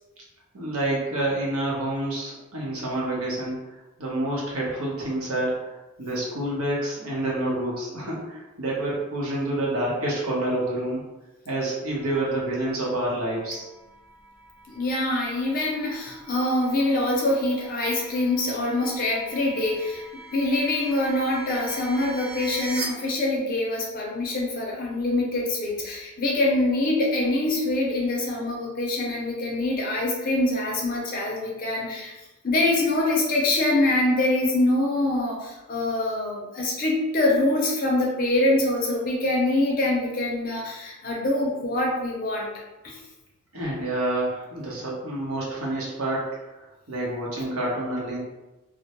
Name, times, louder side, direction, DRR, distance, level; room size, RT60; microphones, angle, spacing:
voice 1, 0.5-3.6 4.0-5.7 6.0-11.0 11.5-13.7 43.5-46.3 46.6-48.2, right 1 dB, 80° right, -4 dB, 0.8 m, -28 dB
sound 1, 11.9-22.8, right 2 dB, 45° right, 0.5 m, -43 dB
voice 2, 14.7-32.1 32.4-42.5 42.8-43.0, left 2 dB, 40° left, -2 dB, 0.5 m, -24 dB
2.2 x 2.0 x 2.8 m, 1.0 s
head